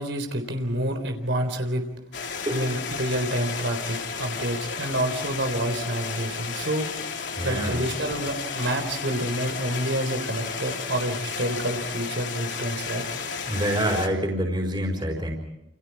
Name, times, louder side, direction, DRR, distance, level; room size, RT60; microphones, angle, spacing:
voice 1, 0.0-1.8 2.5-6.9 7.4-13.0, right 1 dB, 85° right, 6 dB, 3.9 m, -28 dB
sound 1, 2.1-14.1, left 5 dB, 80° left, 3.2 m, -33 dB
voice 2, 7.4-7.8 13.5-15.3, equal, 25° right, 0 dB, 4.6 m, -26 dB
29.5 x 29.0 x 4.8 m, 0.81 s
head